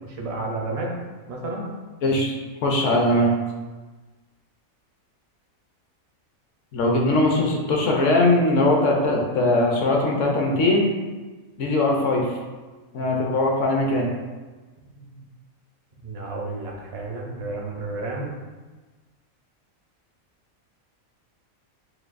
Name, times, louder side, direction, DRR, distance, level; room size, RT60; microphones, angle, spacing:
voice 1, 0.0-0.9 1.3-1.7 15.0-15.2 16.0-18.3, right 2 dB, 40° right, -2 dB, 0.5 m, -31 dB
voice 2, 2.0-2.3 2.6-3.3 6.7-10.9 11.6-12.3 12.9-14.1, left 2 dB, 65° left, 0 dB, 1.0 m, -20 dB
6.5 x 2.2 x 2.5 m, 1.3 s
omnidirectional pair, 1.5 m